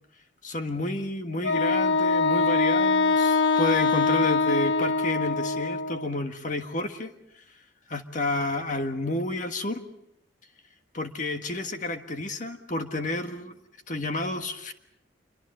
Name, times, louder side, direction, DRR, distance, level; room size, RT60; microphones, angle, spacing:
voice 1, 0.4-7.4 7.9-9.8 10.9-13.5 13.9-14.7, left 2 dB, 40° left, 6 dB, 1.5 m, -30 dB
Wind instrument woodwind instrument, 1.4-6.1, left 4 dB, 70° left, 1.0 m, -23 dB
27.0 x 23.0 x 6.7 m, 0.77 s
head